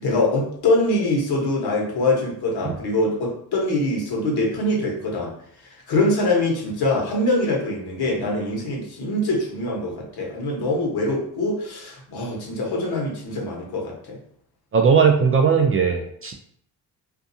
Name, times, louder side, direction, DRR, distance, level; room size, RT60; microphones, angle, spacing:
voice 1, 0.0-5.3 5.9-14.2, left 2 dB, 60° left, -2 dB, 1.2 m, -23 dB
voice 2, 14.7-16.3, right 6 dB, 35° right, 3 dB, 0.4 m, -18 dB
2.6 x 2.3 x 2.7 m, 0.67 s
supercardioid pair, 75°, 43 cm